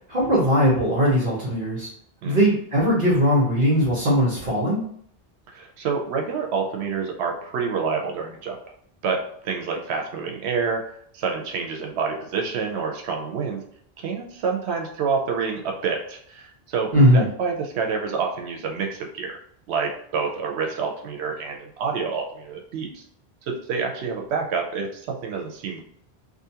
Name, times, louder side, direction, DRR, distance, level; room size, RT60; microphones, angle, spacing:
voice 1, 0.1-1.9 2.2-4.8 16.9-17.3, equal, 55° right, -6 dB, 1.0 m, -19 dB
voice 2, 5.5-8.6 9.0-13.6 14.0-19.4 19.7-23.0 23.5-25.8, right 5 dB, 90° right, 1 dB, 0.8 m, -28 dB
2.6 x 2.4 x 2.7 m, 0.66 s
omnidirectional pair, 1.1 m